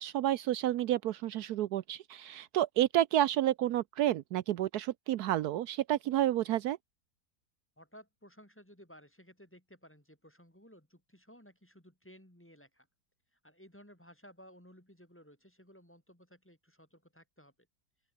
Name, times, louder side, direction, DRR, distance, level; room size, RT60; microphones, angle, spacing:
voice 1, 0.0-6.8, right 13 dB, 75° right, 1.2 m, -30 dB
voice 2, 7.8-12.9 13.3-17.5, equal, 5° left, 3.6 m, -57 dB
open air
omnidirectional pair, 1.7 m